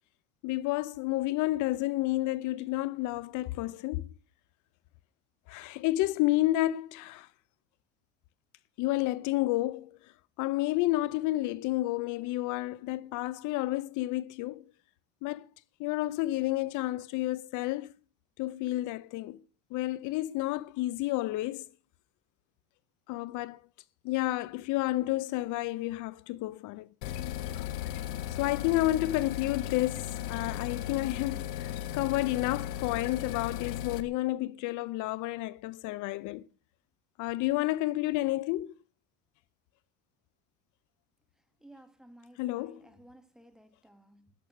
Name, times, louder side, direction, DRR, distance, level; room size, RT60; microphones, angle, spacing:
voice 1, 0.4-4.0 5.5-7.3 8.8-10.1 10.4-14.6 15.2-15.5 15.8-17.9 18.4-19.4 19.7-21.7 23.1-23.6 24.0-27.2 28.3-36.4 37.2-38.7 42.4-42.9, left 17 dB, 65° left, 0.7 m, -30 dB
sound 1, 27.0-34.0, left 11 dB, 80° left, 1.3 m, -36 dB
voice 2, 41.6-44.3, right 1 dB, ahead, 1.9 m, -56 dB
13.5 x 10.5 x 6.4 m
supercardioid pair, 110°, 32 cm